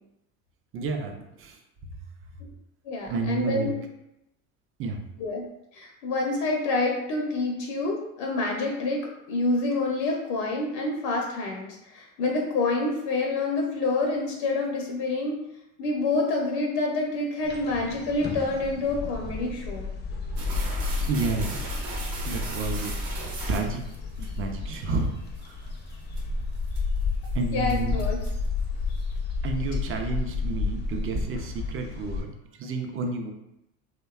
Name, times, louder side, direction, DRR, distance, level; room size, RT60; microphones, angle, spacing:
voice 1, 0.7-1.6 3.0-3.7 4.8-5.0 21.1-21.6 22.2-23.0 23.5-23.9 24.2-25.1 25.4-25.6 27.3-28.0 29.4-32.3 32.6-33.3, right 3 dB, 30° right, 4 dB, 0.4 m, -30 dB
voice 2, 2.8-3.8 5.2-15.5 15.8-19.9 27.5-28.2, left 2 dB, 65° left, 0 dB, 0.6 m, -27 dB
sound 1, 17.4-32.2, left 4 dB, 25° left, 0.5 m, -31 dB
sound 2, 20.4-24.3 24.7-24.8 25.4-25.5 25.9-26.2 26.7-27.0 27.2-27.3 27.7-28.5, right 3 dB, 60° right, 0.8 m, -36 dB
2.6 x 2.2 x 2.3 m, 0.84 s
hypercardioid pair, 75°, 43 cm